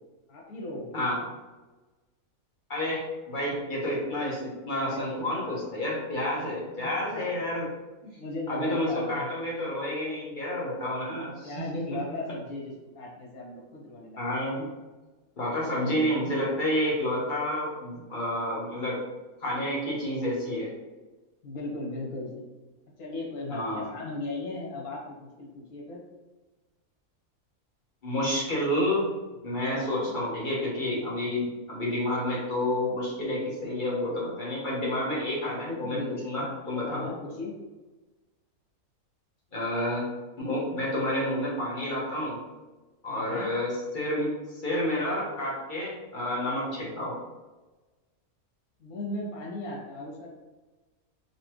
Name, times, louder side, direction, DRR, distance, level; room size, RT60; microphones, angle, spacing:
voice 1, 0.3-1.0 4.8-5.7 6.8-7.2 8.0-9.3 11.0-14.5 15.8-16.4 21.4-22.4 23.0-26.0 29.7-30.1 35.5-37.5 43.1-43.5 48.8-50.3, left 2 dB, 85° left, -3 dB, 1.5 m, -37 dB
voice 2, 2.7-7.6 8.5-11.5 11.9-12.0 14.2-14.7 15.4-19.0 19.4-20.7 23.5-23.9 28.0-29.1 29.4-36.0 36.2-37.1 39.5-40.0 40.4-42.4 43.0-47.1, left 1 dB, 35° left, -5 dB, 1.2 m, -29 dB
4.0 x 3.0 x 3.0 m, 1.2 s
omnidirectional pair, 1.5 m